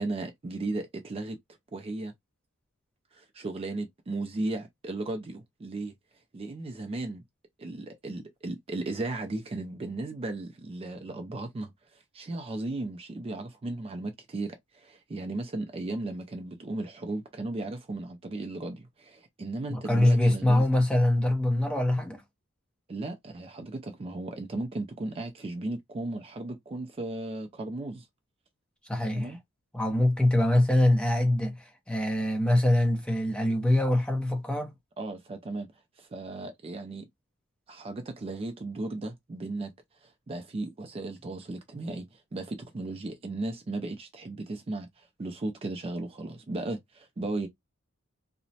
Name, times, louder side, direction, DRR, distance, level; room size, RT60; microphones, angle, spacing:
voice 1, 0.0-1.4 1.7-2.1 3.1-5.9 6.3-7.2 7.6-20.7 22.9-28.1 29.1-29.4 35.0-37.1 37.7-39.7 40.0-47.5, right 2 dB, 30° right, 0.4 m, -36 dB
voice 2, 19.7-22.2 28.9-29.3 29.7-34.7, left 1 dB, 5° left, 0.7 m, -24 dB
2.9 x 2.1 x 2.7 m
head